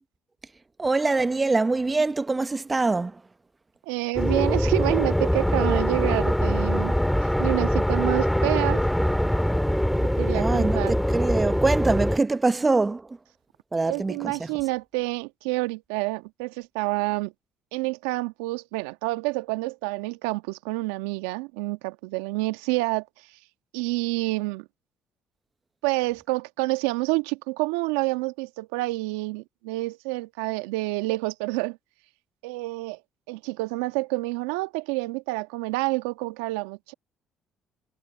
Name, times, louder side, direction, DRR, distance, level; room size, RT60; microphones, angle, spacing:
voice 1, 0.8-3.1 10.3-10.8 11.1-13.0 13.7-14.5, right 3 dB, 25° right, 0.9 m, -24 dB
voice 2, 3.9-6.9 7.4-8.8 10.2-11.0 13.8-17.3 17.7-23.0 23.7-24.6 25.8-31.8 32.4-33.0 33.3-36.9, right 23 dB, 85° right, 1.5 m, -28 dB
sound 1, 4.2-12.2, equal, 5° left, 2.2 m, -23 dB
hypercardioid pair, 60°, 0 cm